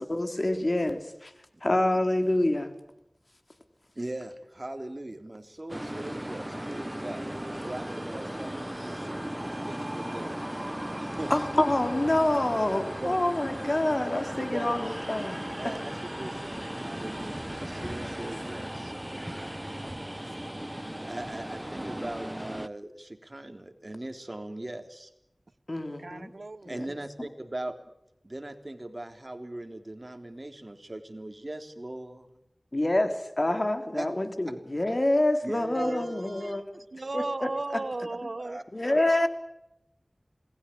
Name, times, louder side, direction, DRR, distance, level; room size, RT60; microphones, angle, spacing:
voice 1, 0.0-1.3 1.6-2.7 11.3-15.7 17.7-17.9 25.7-26.3 26.7-26.8 32.7-36.8 37.1-37.8 38.7-39.3, left 1 dB, 50° left, 7 dB, 3.6 m, -27 dB
voice 2, 4.0-7.3 7.6-9.2 9.7-10.7 11.0-11.3 13.0-13.2 14.4-14.7 15.6-18.9 21.0-25.1 26.7-27.7 28.2-32.3 34.0-34.1 34.5-34.6 35.4-36.1 38.4-38.6 38.9-39.1, right 1 dB, 40° right, 6 dB, 3.5 m, -40 dB
sound 1, 5.7-22.7, right 1 dB, 15° right, 1.0 m, -36 dB
voice 3, 26.0-26.7 35.7-38.6 39.0-39.3, right 2 dB, 75° right, 14 dB, 1.1 m, -35 dB
27.5 x 20.0 x 8.7 m, 0.83 s
wide cardioid pair, 40°, 0 cm